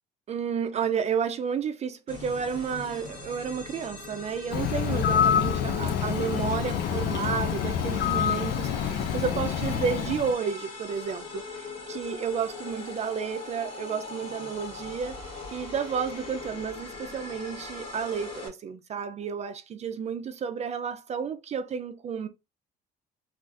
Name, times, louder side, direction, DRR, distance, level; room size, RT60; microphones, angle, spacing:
voice 1, 0.3-15.2 15.5-22.3, right 6 dB, 40° right, 0.4 m, -31 dB
sound 1, 2.1-18.5, left 4 dB, 35° left, 1.6 m, -40 dB
Bird, 4.5-10.3, left 8 dB, 70° left, 0.5 m, -27 dB
3.9 x 2.4 x 2.4 m
cardioid pair, 110°, 17 cm